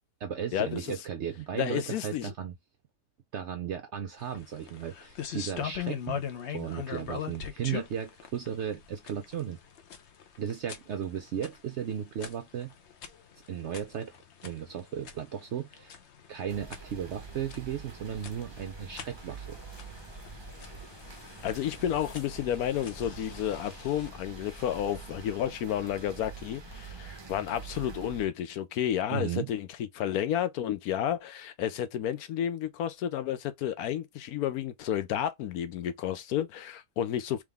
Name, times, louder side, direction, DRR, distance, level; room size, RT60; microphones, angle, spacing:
voice 1, 0.2-2.5 3.3-6.2 6.5-9.6 10.4-12.7 13.5-14.2 14.4-16.0 16.3-19.6 29.1-29.5, right 9 dB, 70° right, 0.7 m, -35 dB
voice 2, 1.5-2.3 21.4-29.7 29.9-37.4, left 10 dB, 75° left, 1.1 m, -31 dB
sound 1, 4.2-24.1, left 8 dB, 55° left, 0.9 m, -42 dB
sound 2, 16.5-28.3, right 4 dB, 30° right, 0.5 m, -45 dB
3.6 x 3.2 x 3.4 m
omnidirectional pair, 1.7 m